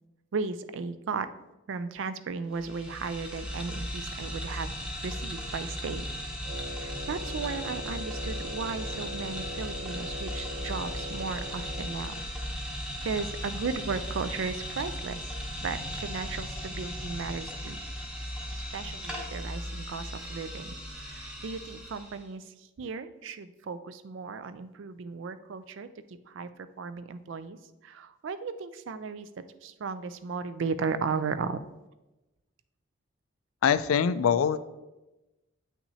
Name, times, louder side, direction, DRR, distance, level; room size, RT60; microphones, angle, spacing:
voice 1, 0.3-1.3 1.7-4.7 5.0-6.1 6.6-12.1 12.4-12.7 13.0-15.2 15.6-17.8 18.5-20.7 21.1-22.4 22.8-25.9 26.3-26.5 26.8-27.6 27.8-29.3 29.6-31.6, right 5 dB, 65° right, 12 dB, 0.4 m, -35 dB
sound 1, 2.5-22.2, equal, 5° right, 0.9 m, -37 dB
Wind instrument woodwind instrument, 6.4-12.1, left 1 dB, 45° right, 1.5 m, -41 dB
voice 2, 33.6-34.6, left 7 dB, 85° left, 15 dB, 0.3 m, -23 dB
8.3 x 5.8 x 2.8 m, 1.0 s
head